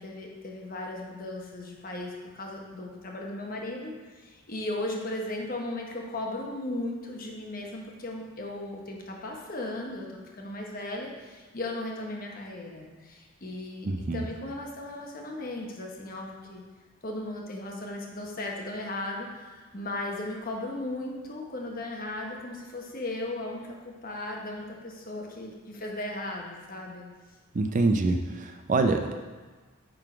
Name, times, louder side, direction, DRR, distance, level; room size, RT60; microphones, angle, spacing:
voice 1, 0.0-16.6 17.0-27.0 29.1-29.2, left 1 dB, 40° left, 0 dB, 1.0 m, -36 dB
voice 2, 13.8-14.3 27.5-29.1, right 3 dB, 35° right, 6 dB, 0.4 m, -25 dB
9.1 x 3.8 x 4.9 m, 1.3 s
head